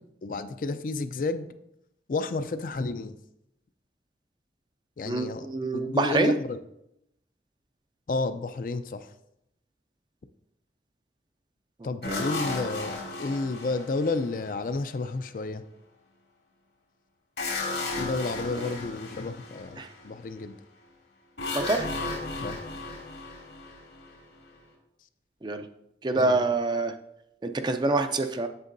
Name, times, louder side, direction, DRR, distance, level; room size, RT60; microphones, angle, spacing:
voice 1, 0.2-1.5 2.1-3.2 5.0-5.5 5.7-6.6 8.1-9.1 11.8-15.6 18.0-20.6 22.4-22.6 26.2-26.4, left 3 dB, 50° left, 11 dB, 0.4 m, -31 dB
voice 2, 5.1-6.4 12.0-12.2 18.5-18.7 19.8-19.9 21.5-21.9 25.4-25.7 26.0-27.0 27.4-28.5, right 2 dB, 25° right, 8 dB, 0.4 m, -26 dB
sound 1, 12.0-15.0 17.4-20.1 21.4-24.5, left 3 dB, 85° left, 2.3 m, -34 dB
8.1 x 7.4 x 2.6 m, 0.82 s
head